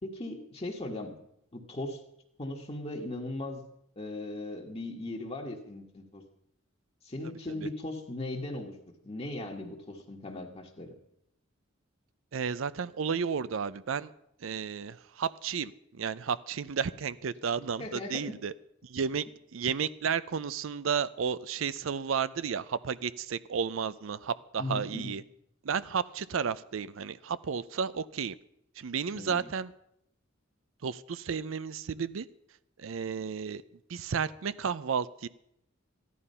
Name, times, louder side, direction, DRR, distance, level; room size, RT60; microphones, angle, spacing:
voice 1, 0.0-1.2 1.5-2.0 2.4-3.6 3.9-6.2 7.0-8.8 9.0-10.9 17.8-18.4 24.6-25.1 29.1-29.5, left 2 dB, 30° left, 1 dB, 1.5 m, -38 dB
voice 2, 12.3-14.1 14.4-18.5 18.8-19.3 19.5-25.2 25.6-28.4 28.8-29.7 30.8-32.3 32.8-33.6 33.9-35.3, right 6 dB, 80° right, 16 dB, 0.5 m, -32 dB
14.5 x 11.0 x 5.5 m, 0.77 s
head